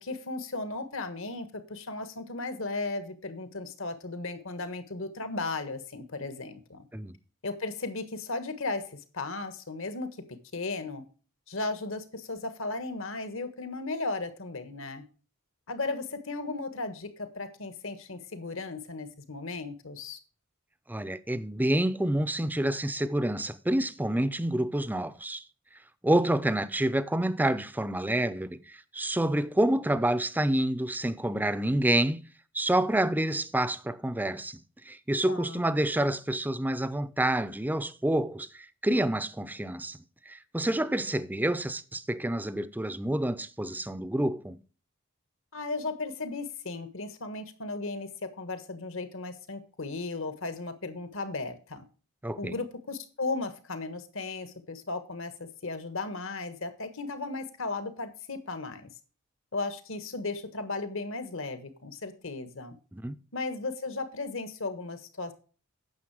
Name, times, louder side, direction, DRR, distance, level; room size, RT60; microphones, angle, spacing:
voice 1, 0.0-6.8 7.4-10.1 10.5-11.0 11.5-15.0 15.7-20.2 35.3-35.6 45.5-51.8 52.4-58.9 59.5-62.8 63.3-65.3, left 3 dB, 65° left, 1.5 m, -35 dB
voice 2, 20.9-25.4 26.0-32.2 32.5-40.0 40.3-44.6 52.2-52.6 62.9-63.2, right 1 dB, 10° right, 0.5 m, -28 dB
9.5 x 6.8 x 4.8 m
head